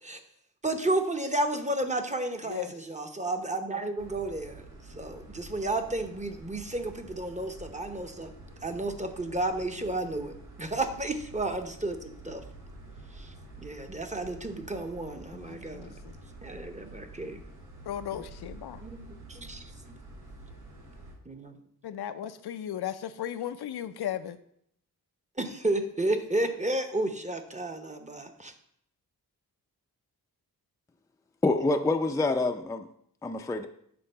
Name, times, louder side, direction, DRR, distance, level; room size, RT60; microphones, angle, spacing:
voice 1, 0.6-4.6 4.9-8.3 8.6-12.4 13.2-13.3 13.6-16.0 16.4-17.4 18.8-19.7 21.3-21.6 25.4-28.5, right 2 dB, 20° right, 5 dB, 0.8 m, -32 dB
voice 2, 2.4-2.7 15.3-16.2 17.8-18.8 21.8-24.4, left 10 dB, 80° left, 10 dB, 0.6 m, -36 dB
sound 1, 4.0-21.1, right 2 dB, 90° right, 2.4 m, -48 dB
voice 3, 31.4-32.9 33.2-33.7, left 2 dB, 10° left, 5 dB, 0.4 m, -26 dB
7.8 x 3.7 x 5.4 m, 0.69 s
wide cardioid pair, 90°, 38 cm